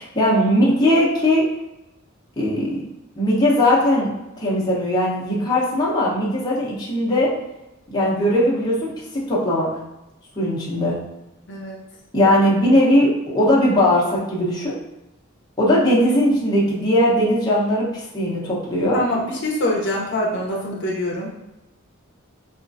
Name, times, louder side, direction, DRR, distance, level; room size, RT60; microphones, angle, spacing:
voice 1, 0.0-1.5 2.4-2.8 3.1-4.1 4.4-7.3 7.9-9.7 10.4-11.0 12.1-14.7 15.6-19.0, left 1 dB, 20° left, -6 dB, 0.9 m, -19 dB
voice 2, 11.5-11.8 18.9-21.3, left 1 dB, 60° left, -2 dB, 0.7 m, -24 dB
4.3 x 2.4 x 2.5 m, 0.96 s
head